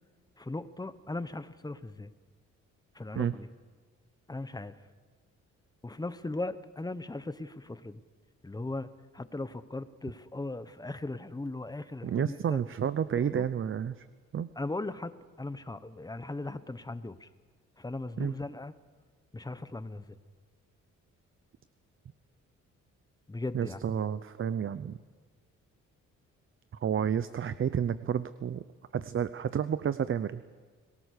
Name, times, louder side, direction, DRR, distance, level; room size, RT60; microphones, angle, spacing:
voice 1, 0.4-2.1 2.9-3.5 4.3-4.8 5.8-8.0 8.4-12.6 13.2-13.5 14.6-17.3 17.8-18.7 19.3-20.2 23.3-23.8, left 2 dB, 15° left, 13 dB, 1.2 m, -38 dB
voice 2, 12.0-14.1 14.3-14.5 18.2-18.3 23.5-25.0 26.8-28.6 28.9-30.4, right 8 dB, 45° right, 14 dB, 0.8 m, -30 dB
30.0 x 18.5 x 6.7 m, 1.5 s
cardioid pair, 90°, 30 cm